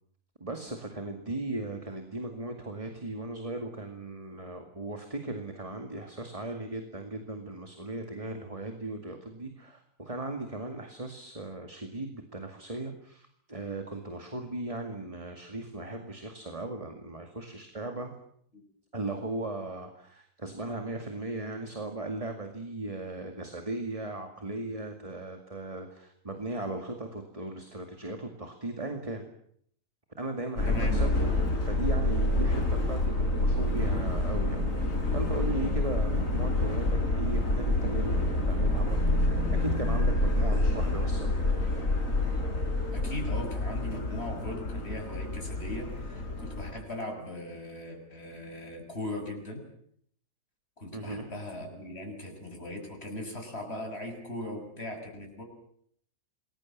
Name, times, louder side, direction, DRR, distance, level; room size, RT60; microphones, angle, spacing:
voice 1, 0.4-18.1 18.9-29.3 30.2-31.1 31.6-38.1 38.5-39.3 39.6-41.6 50.9-51.3, right 2 dB, 20° right, 5 dB, 2.3 m, -37 dB
Subway metro underground, 30.6-46.7, left 2 dB, 55° left, 4.7 m, -28 dB
voice 2, 30.6-31.1 42.9-49.6 50.8-55.4, left 1 dB, 40° left, 2 dB, 6.9 m, -39 dB
28.0 x 21.0 x 7.5 m, 0.67 s
omnidirectional pair, 1.7 m